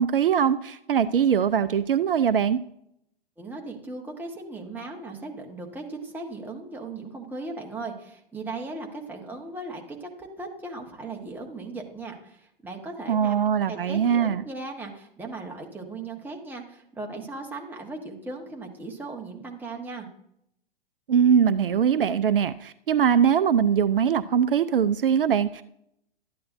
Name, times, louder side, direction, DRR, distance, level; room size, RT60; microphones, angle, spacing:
voice 1, 0.0-2.6 13.1-14.4 21.1-25.6, right 8 dB, 65° right, 13 dB, 0.5 m, -22 dB
voice 2, 3.4-13.4 13.7-20.1, right 3 dB, 5° right, 0 dB, 1.4 m, -37 dB
13.0 x 9.4 x 2.6 m, 0.74 s
figure-of-eight pair, 110°, 30 cm